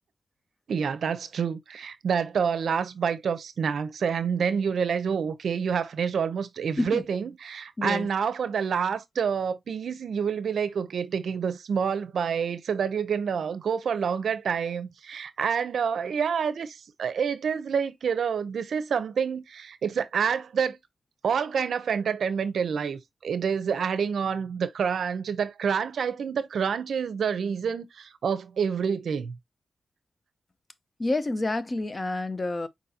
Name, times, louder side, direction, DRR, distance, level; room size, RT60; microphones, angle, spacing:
voice 1, 0.7-20.8 21.2-29.3, right 6 dB, 75° right, 0.6 m, -28 dB
voice 2, 7.8-8.1 31.0-32.7, left 2 dB, 25° left, 0.5 m, -28 dB
4.7 x 4.0 x 2.7 m
wide cardioid pair, 135°, 0 cm